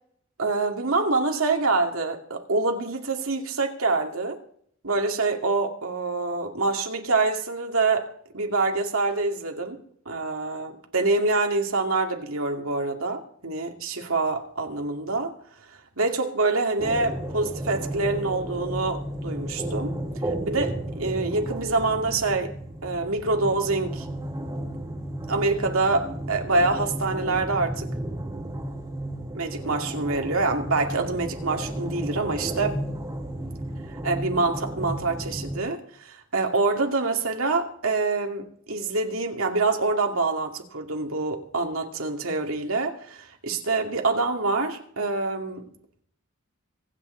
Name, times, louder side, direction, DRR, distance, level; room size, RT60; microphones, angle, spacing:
voice 1, 0.4-4.4 4.8-9.8 10.1-15.3 16.0-19.9 20.5-22.5 22.8-24.1 25.3-27.9 29.3-32.8 34.0-45.6, right 3 dB, 80° right, 2.4 m, -26 dB
sound 1, 16.8-35.6, right 1 dB, 20° right, 2.0 m, -33 dB
25.0 x 9.3 x 3.9 m
head